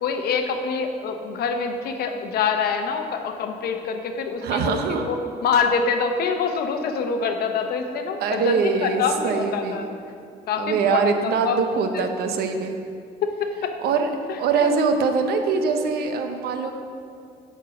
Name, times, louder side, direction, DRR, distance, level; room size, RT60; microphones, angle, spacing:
voice 1, 0.0-9.9 10.5-11.0 11.4-11.6 11.9-12.1 13.2-13.7 14.6-14.7, left 5 dB, 65° left, 5 dB, 0.9 m, -25 dB
voice 2, 4.4-5.1 8.2-9.9 10.6-12.8 13.8-14.1 14.4-16.7, right 5 dB, 70° right, 5 dB, 0.8 m, -23 dB
9.1 x 4.5 x 6.0 m, 2.3 s
cardioid pair, 110°, 17 cm